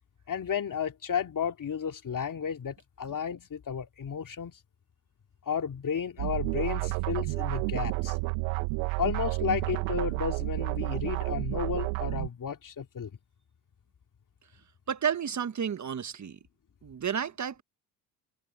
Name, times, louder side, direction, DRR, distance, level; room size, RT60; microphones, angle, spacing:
voice 1, 0.3-4.6 5.5-8.2 9.0-13.1, left 7 dB, 40° left, 2.7 m, -33 dB
sound 1, 6.2-12.3, right 30 dB, 70° right, 0.6 m, -30 dB
voice 2, 14.9-16.4 16.8-17.6, right 8 dB, 35° right, 1.4 m, -31 dB
hypercardioid pair, 65°, 49 cm